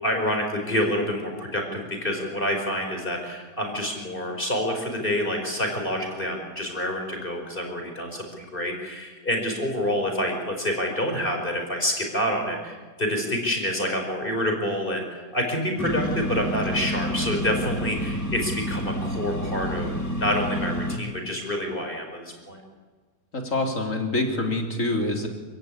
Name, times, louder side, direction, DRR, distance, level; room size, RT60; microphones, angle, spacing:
voice 1, 0.0-22.6, equal, 35° left, 3 dB, 4.8 m, -27 dB
sound 1, 15.8-21.0, equal, 10° left, 3.0 m, -29 dB
voice 2, 23.3-25.3, left 2 dB, 55° left, 3 dB, 3.6 m, -26 dB
28.0 x 15.5 x 9.9 m, 1.4 s
omnidirectional pair, 1.6 m